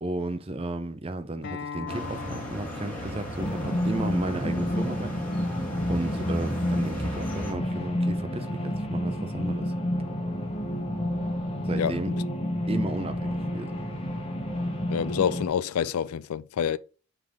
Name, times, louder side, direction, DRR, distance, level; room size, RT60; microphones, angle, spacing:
voice 1, 0.0-5.6 5.9-9.7 11.6-12.1 12.7-13.8, right 2 dB, 25° right, 0.5 m, -34 dB
Acoustic guitar, 1.4-6.6, left 6 dB, 50° left, 0.8 m, -42 dB
sound 1, 1.9-7.5, equal, 5° left, 1.9 m, -36 dB
sound 2, 3.4-15.5, equal, 25° left, 1.1 m, -30 dB
voice 2, 11.8-12.2 14.9-16.8, left 8 dB, 85° left, 0.4 m, -27 dB
5.7 x 3.4 x 5.0 m
head